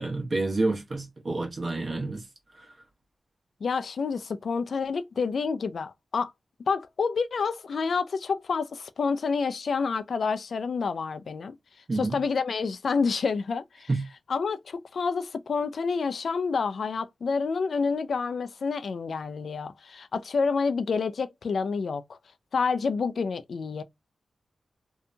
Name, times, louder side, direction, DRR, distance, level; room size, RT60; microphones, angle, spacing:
voice 1, 0.0-2.2 11.9-12.2 13.9-14.0, right 2 dB, 50° right, 1.0 m, -28 dB
voice 2, 3.6-6.3 6.7-11.6 11.9-13.9 14.3-22.0 22.5-23.8, left 5 dB, 70° left, 0.3 m, -28 dB
2.7 x 2.2 x 2.6 m
cardioid pair, 65°, 0 cm